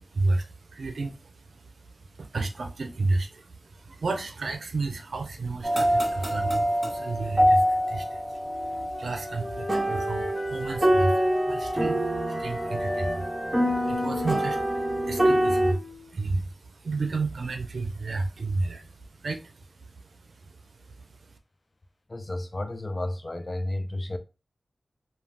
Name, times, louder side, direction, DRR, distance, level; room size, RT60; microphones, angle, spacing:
voice 1, 0.0-21.4, right 3 dB, 75° right, 0.5 m, -32 dB
sound 1, 5.6-15.7, equal, 15° right, 0.9 m, -25 dB
Wind instrument woodwind instrument, 8.4-12.0 12.3-16.1, left 2 dB, 60° left, 1.0 m, -38 dB
voice 2, 22.1-24.2, left 1 dB, 35° left, 0.5 m, -32 dB
2.3 x 2.3 x 3.3 m
wide cardioid pair, 60°, 0 cm